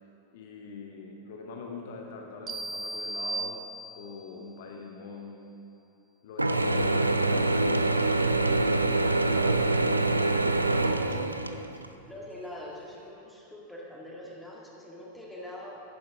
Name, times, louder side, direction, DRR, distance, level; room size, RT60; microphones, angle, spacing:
voice 1, 0.3-5.4 6.2-8.1 9.2-9.7, left 4 dB, 55° left, 1 dB, 0.8 m, -43 dB
sound 1, 2.5-4.3, right 2 dB, 20° right, 0.6 m, -36 dB
Mechanisms / Drill, 6.4-11.9, right 2 dB, 85° right, 0.4 m, -25 dB
voice 2, 10.5-11.5 12.1-15.8, left 1 dB, 5° left, -4 dB, 1.9 m, -44 dB
10.5 x 10.5 x 3.6 m, 2.8 s
figure-of-eight pair, 90°, 0 cm